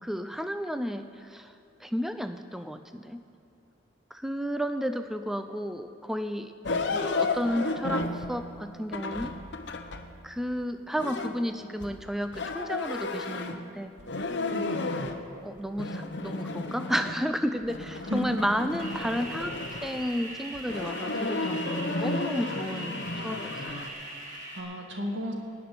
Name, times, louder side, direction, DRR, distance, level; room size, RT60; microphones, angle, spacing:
voice 1, 0.0-1.5 1.8-3.2 4.1-6.5 6.9-9.3 10.2-13.9 14.2-14.4 15.4-19.5 19.8-23.9, equal, ahead, 8 dB, 0.4 m, -32 dB
sound 1, 6.6-10.2 11.0-13.7 14.0-15.2 15.6-17.4 17.6-20.0 20.5-23.9, left 3 dB, 60° left, 0.9 m, -33 dB
voice 2, 14.5-15.0 18.1-18.4 24.2-25.3, equal, 65° right, 2 dB, 1.9 m, -35 dB
sound 2, 18.8-24.6, right 1 dB, 40° right, 2.0 m, -41 dB
17.5 x 6.0 x 9.4 m, 2.8 s
head